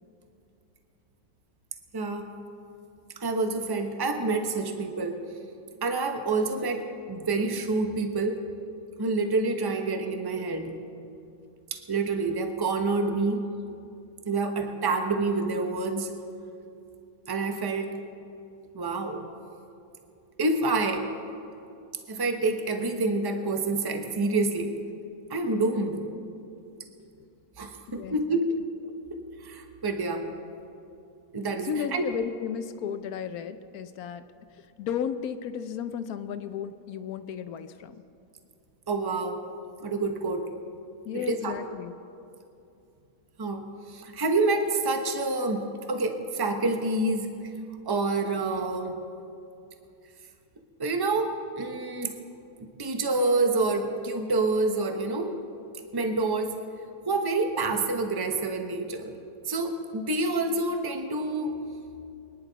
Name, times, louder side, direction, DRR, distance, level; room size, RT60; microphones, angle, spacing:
voice 1, 1.9-2.3 3.2-5.2 5.8-8.4 9.0-10.7 11.7-13.4 14.3-16.1 17.3-17.9 18.7-19.2 20.4-21.0 22.1-24.7 25.3-26.0 27.6-28.6 29.1-30.3 31.3-32.0 38.9-39.4 39.8-40.4 41.1-41.6 43.4-43.6 43.9-47.3 47.8-49.0 50.8-52.4 52.8-55.4 55.9-56.6 57.1-59.1 59.4-61.5, right 3 dB, 20° right, 5 dB, 0.8 m, -27 dB
voice 2, 31.6-34.2 34.8-37.9 41.0-42.0, left 8 dB, 75° left, 11 dB, 1.1 m, -34 dB
24.0 x 10.5 x 4.0 m, 2.7 s
omnidirectional pair, 1.6 m